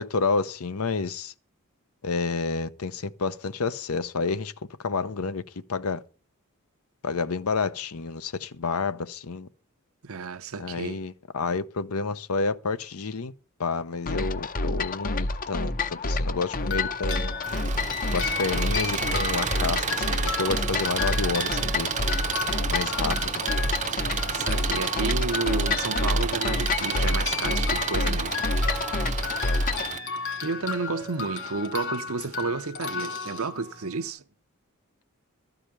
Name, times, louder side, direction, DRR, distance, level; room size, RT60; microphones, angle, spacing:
voice 1, 0.0-1.3 2.0-4.5 4.8-5.4 5.7-6.0 7.0-9.5 10.6-13.3 13.6-17.3 18.1-21.9 22.6-23.3, left 4 dB, 90° left, 0.8 m, -29 dB
voice 2, 10.0-11.0 23.9-28.4 30.4-34.2, right 4 dB, 75° right, 0.8 m, -31 dB
sound 1, 14.1-29.9, left 2 dB, 40° left, 0.7 m, -28 dB
sound 2, 16.6-34.1, left 5 dB, 60° left, 2.5 m, -35 dB
Engine, 17.4-30.0, right 7 dB, 35° right, 0.6 m, -31 dB
13.0 x 5.0 x 9.0 m
head